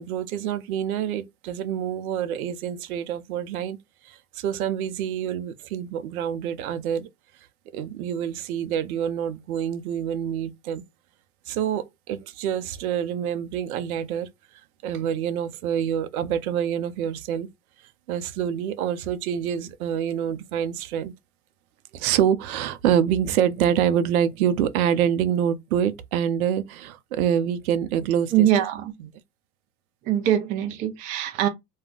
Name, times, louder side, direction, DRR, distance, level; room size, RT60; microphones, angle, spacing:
voice 1, 0.0-3.8 4.0-7.1 7.7-10.8 11.5-14.3 14.8-17.5 18.1-21.1 21.9-28.5 29.0-29.1, right 9 dB, 65° right, 0.6 m, -26 dB
voice 2, 28.3-28.9 30.1-31.5, right 11 dB, 20° right, 0.4 m, -22 dB
2.4 x 2.2 x 3.6 m
hypercardioid pair, 105°, 46 cm